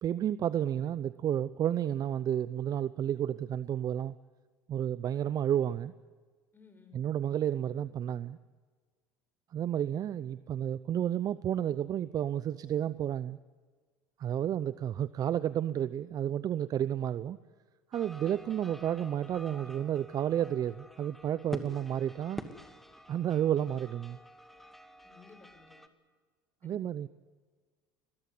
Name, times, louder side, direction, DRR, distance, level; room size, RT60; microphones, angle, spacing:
voice 1, 0.0-4.2 4.7-5.9 6.9-8.4 9.5-13.4 14.2-17.4 17.9-22.4 23.1-24.2 26.6-27.1, right 10 dB, 40° right, 16 dB, 0.7 m, -31 dB
voice 2, 6.5-7.0 14.4-14.5 25.0-25.8 26.6-26.9, left 5 dB, 20° left, 7 dB, 6.3 m, -57 dB
sound 1, 17.9-25.9, equal, ahead, 2.3 m, -48 dB
22.0 x 20.0 x 9.6 m, 1.5 s
hypercardioid pair, 80°, 10 cm